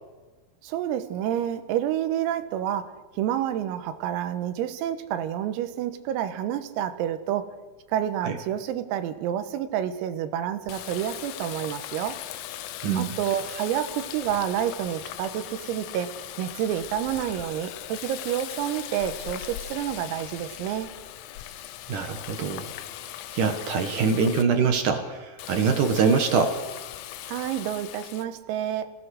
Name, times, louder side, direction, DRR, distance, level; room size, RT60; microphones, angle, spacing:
voice 1, 0.6-7.5 7.9-12.2 13.0-20.9 27.3-28.9, right 10 dB, 90° right, 10 dB, 4.0 m, -29 dB
Water tap faucet, 10.7-24.4 25.4-28.3, left 13 dB, 90° left, 3.7 m, -39 dB
voice 2, 21.9-22.7 23.1-26.6, right 5 dB, 65° right, 6 dB, 2.0 m, -24 dB
27.5 x 18.5 x 6.5 m, 1.3 s
omnidirectional pair, 5.9 m